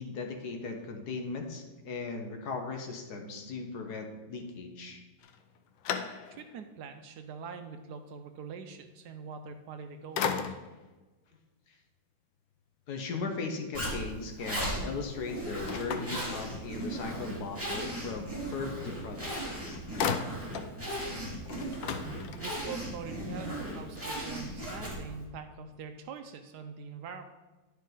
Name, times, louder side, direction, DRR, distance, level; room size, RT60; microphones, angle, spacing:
voice 1, 0.0-5.0 12.9-19.6, left 4 dB, 65° left, 4 dB, 1.4 m, -38 dB
sound 1, 5.2-6.6 7.2-7.3 9.5-9.8 10.2-10.9 15.7-17.0 19.1-19.2 19.4-20.8 21.1-21.2 21.5-22.7, left 7 dB, 85° left, 1.4 m, -36 dB
voice 2, 6.3-10.6 22.3-27.2, right 6 dB, 75° right, 7 dB, 1.1 m, -44 dB
Zipper (clothing), 13.7-25.2, right 1 dB, 5° right, 2.1 m, -37 dB
10.5 x 5.5 x 3.9 m, 1.2 s
omnidirectional pair, 2.0 m